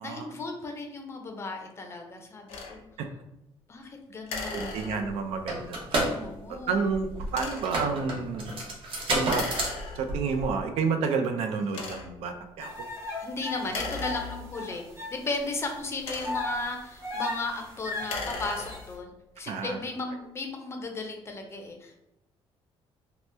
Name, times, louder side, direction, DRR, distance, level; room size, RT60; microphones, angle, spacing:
voice 1, 0.0-2.9 3.7-5.0 6.1-6.9 13.2-14.8 15.1-19.1 19.4-22.0, left 3 dB, 25° left, 3 dB, 0.5 m, -35 dB
sound 1, 2.5-2.8 4.3-5.3 7.3-7.8 9.3-10.3 11.0-11.1 11.7-12.3 13.6-14.8 15.7-16.6 17.9-19.0, left 3 dB, 80° left, 0.7 m, -37 dB
voice 2, 4.5-5.8 6.5-8.5 9.1-9.4 10.0-12.7 19.5-19.8, right 5 dB, 85° right, 6 dB, 0.4 m, -30 dB
sound 2, 5.0-10.7, right 1 dB, 55° right, 0.8 m, -31 dB
sound 3, 12.6-15.1 15.6-15.7 16.2-18.9, left 3 dB, 25° right, 0.8 m, -36 dB
2.9 x 2.1 x 3.3 m, 0.90 s
cardioid pair, 145°, 10 cm